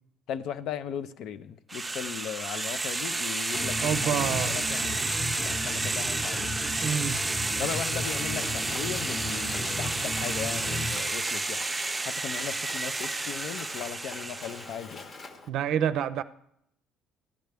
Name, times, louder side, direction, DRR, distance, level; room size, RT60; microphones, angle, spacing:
voice 1, 0.3-6.5 7.6-11.7 12.0-15.1, left 9 dB, 70° left, 12 dB, 0.5 m, -37 dB
sound 1, 1.7-14.8, right 3 dB, 15° right, 0.5 m, -31 dB
sound 2, 3.5-11.0, left 2 dB, 20° left, 0.9 m, -35 dB
voice 2, 3.8-4.6 6.8-7.2 15.5-16.2, right 9 dB, 70° right, 13 dB, 0.5 m, -28 dB
Mechanisms, 8.4-15.5, left 3 dB, 40° left, 1.0 m, -45 dB
13.0 x 9.2 x 3.4 m, 0.75 s
cardioid pair, 95°, 0 cm